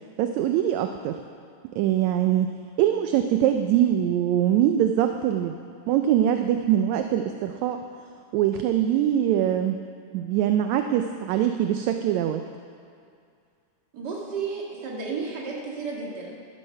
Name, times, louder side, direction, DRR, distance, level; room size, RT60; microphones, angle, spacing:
voice 1, 0.2-1.2 1.8-5.6 5.9-7.8 8.3-9.8 10.1-12.4, right 11 dB, 80° right, 6 dB, 1.7 m, -23 dB
voice 2, 13.9-16.4, right 4 dB, 40° right, -2 dB, 1.9 m, -32 dB
12.5 x 11.0 x 5.7 m, 2.3 s
omnidirectional pair, 3.7 m